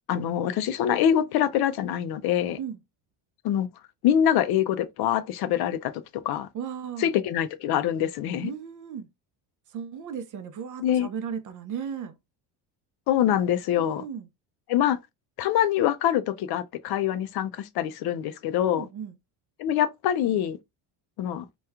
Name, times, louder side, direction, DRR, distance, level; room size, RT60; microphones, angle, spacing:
voice 1, 0.1-2.6 3.4-3.7 4.0-5.9 6.2-6.5 7.0-8.5 10.8-11.1 13.1-14.0 14.7-15.0 15.4-18.9 19.6-20.6 21.2-21.5, left 10 dB, 60° left, 0.5 m, -24 dB
voice 2, 6.5-7.1 8.4-9.1 9.7-12.1 13.8-14.3 18.7-19.2, right 7 dB, 45° right, 0.6 m, -35 dB
2.9 x 2.3 x 3.4 m
cardioid pair, 130°, 45 cm